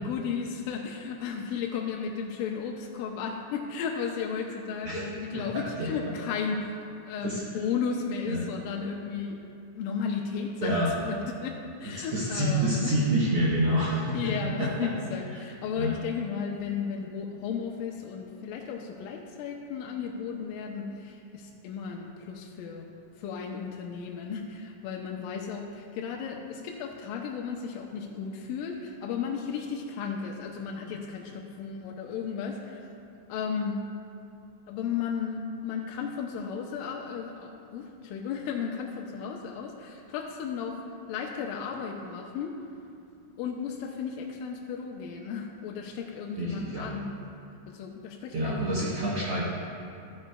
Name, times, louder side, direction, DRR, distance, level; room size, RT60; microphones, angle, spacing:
voice 1, 0.0-9.5 9.8-12.9 13.9-22.9 23.2-32.9 33.3-33.9 34.7-40.8 41.1-42.6 43.4-47.2 47.7-49.0, left 6 dB, 80° left, 0 dB, 2.2 m, -34 dB
voice 2, 4.8-5.4 5.8-5.9 7.2-7.4 8.3-8.4 10.6-10.9 12.1-14.2 14.6-14.7 15.7-15.9 46.4-46.9 48.3-49.4, right 1 dB, 75° right, -6 dB, 1.3 m, -27 dB
13.0 x 9.5 x 2.2 m, 2.5 s
omnidirectional pair, 4.0 m